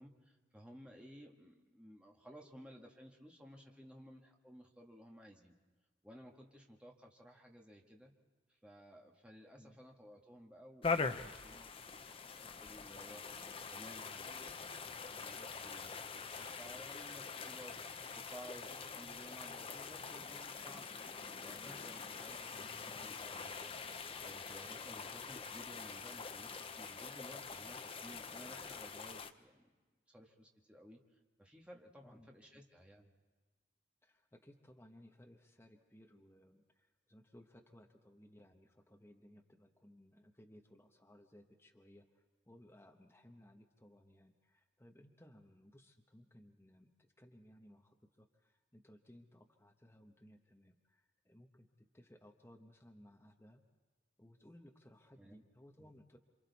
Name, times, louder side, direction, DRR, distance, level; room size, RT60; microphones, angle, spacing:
voice 1, 0.0-5.5 6.0-8.1 8.5-14.8 15.1-21.1 21.4-23.8 24.2-29.7 30.1-33.1 55.2-55.4, equal, 5° right, 0 dB, 1.6 m, -56 dB
sound 1, 10.8-29.3, left 5 dB, 30° left, 0.6 m, -44 dB
voice 2, 34.0-53.6 54.2-56.2, left 1 dB, 15° left, 2 dB, 1.0 m, -61 dB
28.0 x 26.0 x 4.1 m, 1.3 s
head